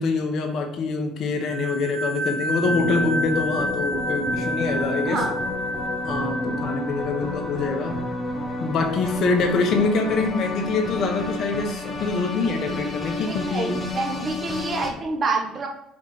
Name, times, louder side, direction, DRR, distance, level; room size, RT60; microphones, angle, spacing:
voice 1, 0.0-5.2 6.0-8.0 8.6-13.8, left 3 dB, 60° left, 4 dB, 1.2 m, -25 dB
sound 1, 1.4-7.9, equal, 55° right, 0.7 m, -30 dB
sound 2, 2.6-14.9, left 2 dB, 5° left, 1.5 m, -31 dB
voice 2, 13.3-15.7, right 3 dB, 35° right, 2 dB, 1.2 m, -27 dB
5.1 x 3.8 x 5.7 m, 0.78 s
supercardioid pair, 85°, 0 cm